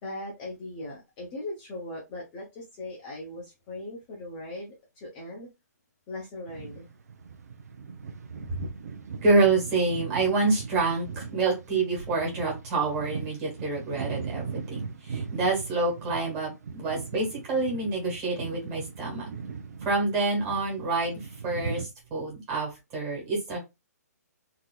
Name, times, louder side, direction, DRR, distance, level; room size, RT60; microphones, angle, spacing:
voice 1, 0.0-5.5 6.1-6.9, left 1 dB, 20° left, -3 dB, 0.7 m, -39 dB
sound 1, 6.5-21.9, right 5 dB, 65° right, 0.7 m, -39 dB
voice 2, 9.2-19.3 19.8-23.6, right 3 dB, 15° right, -2 dB, 1.7 m, -27 dB
3.7 x 2.8 x 2.3 m, 0.23 s
hypercardioid pair, 170°, 9 cm